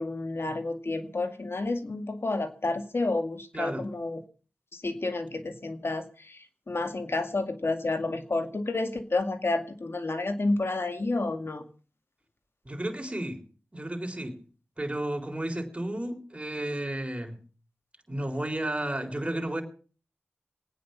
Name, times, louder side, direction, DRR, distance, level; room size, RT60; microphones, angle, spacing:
voice 1, 0.0-4.2 4.7-11.6, left 2 dB, 60° left, 8 dB, 2.2 m, -30 dB
voice 2, 3.5-3.9 12.6-13.4 13.7-14.4 14.8-17.4 18.1-19.6, right 1 dB, 25° right, 3 dB, 4.0 m, -32 dB
22.5 x 9.4 x 5.8 m, 0.39 s
cardioid pair, 40°, 5 cm